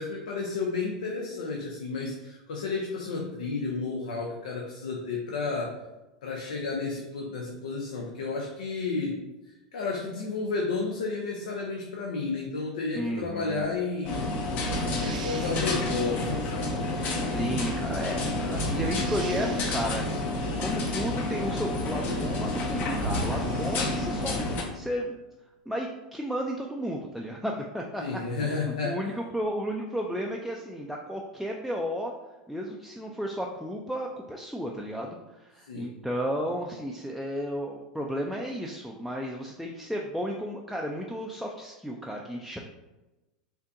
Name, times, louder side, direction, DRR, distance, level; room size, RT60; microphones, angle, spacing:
voice 1, 0.0-5.8 6.2-14.3 15.0-16.8 28.0-29.1 35.6-35.9, left 4 dB, 80° left, 0 dB, 0.5 m, -32 dB
voice 2, 12.9-13.7 17.2-20.3 20.6-25.2 25.7-32.1 32.5-42.6, equal, ahead, -1 dB, 0.4 m, -33 dB
sound 1, 13.6-13.8 14.6-15.8 18.5-20.1 22.3-22.4 22.9-24.5, right 3 dB, 85° right, 0.5 m, -37 dB
sound 2, 14.0-24.6, left 2 dB, 45° left, 0.8 m, -29 dB
4.4 x 2.7 x 2.5 m, 1.1 s
hypercardioid pair, 95°, 4 cm